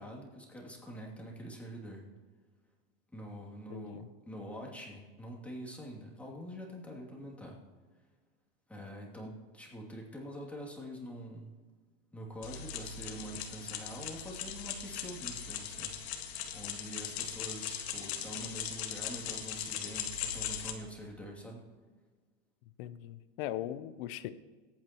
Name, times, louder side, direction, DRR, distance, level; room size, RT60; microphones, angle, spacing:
voice 1, 0.0-2.1 3.1-7.6 8.7-11.5 12.1-16.0 16.5-21.6, equal, 5° left, -2 dB, 2.7 m, -45 dB
voice 2, 3.7-4.1 22.8-24.3, left 12 dB, 65° left, 13 dB, 0.8 m, -39 dB
sound 1, 12.4-20.7, left 8 dB, 85° left, 1.8 m, -39 dB
23.0 x 8.8 x 3.0 m, 1.4 s
supercardioid pair, 140°, 31 cm